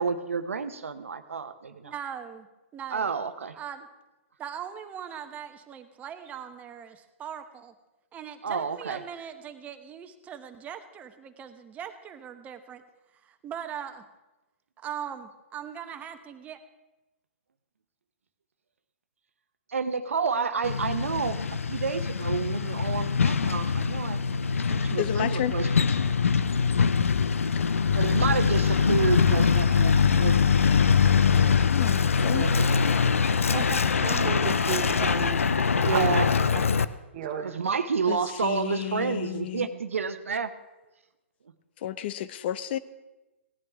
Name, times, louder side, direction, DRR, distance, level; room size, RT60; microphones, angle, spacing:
voice 1, 0.0-1.9 2.9-3.5 8.4-9.0 19.7-24.2 24.7-25.7 27.9-30.5 31.0-31.5 32.2-32.7 32.9-33.6 35.8-36.3 37.4-40.5, right 5 dB, 85° right, 9 dB, 0.9 m, -30 dB
voice 2, 1.8-2.5 2.7-3.1 3.5-3.9 4.4-7.7 8.1-12.8 13.1-14.0 14.8-16.6, right 8 dB, 20° right, 7 dB, 1.0 m, -40 dB
Truck, 20.6-36.8, left 6 dB, 90° left, 0.5 m, -23 dB
voice 3, 25.0-25.6 27.6-27.9 30.6-30.9 31.3-31.4 31.7-32.5 36.5-36.6 38.1-39.7 41.8-42.8, left 12 dB, 50° left, 15 dB, 0.7 m, -32 dB
voice 4, 33.5-35.3 35.9-36.1 37.1-37.5, right 9 dB, 45° right, 0 dB, 1.1 m, -32 dB
17.0 x 11.0 x 3.5 m, 1.1 s
hypercardioid pair, 130°, 7 cm